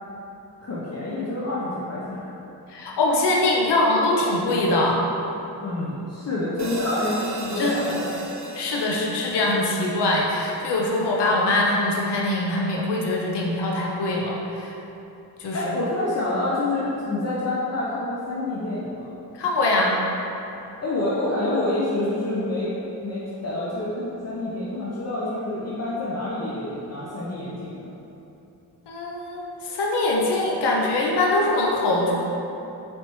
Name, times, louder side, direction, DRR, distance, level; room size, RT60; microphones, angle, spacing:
voice 1, 0.6-2.4 5.6-8.0 15.5-19.1 20.8-22.8 23.0-27.8, left 2 dB, 40° left, -8 dB, 0.7 m, -27 dB
voice 2, 2.7-5.0 7.6-8.0 8.5-14.7 15.4-15.6 19.3-20.0 28.9-32.2, left 2 dB, 75° left, -2 dB, 0.6 m, -23 dB
sound 1, 6.6-11.0, right 2 dB, 45° right, 0.7 m, -37 dB
3.9 x 3.4 x 3.0 m, 2.9 s
cardioid pair, 50°, 41 cm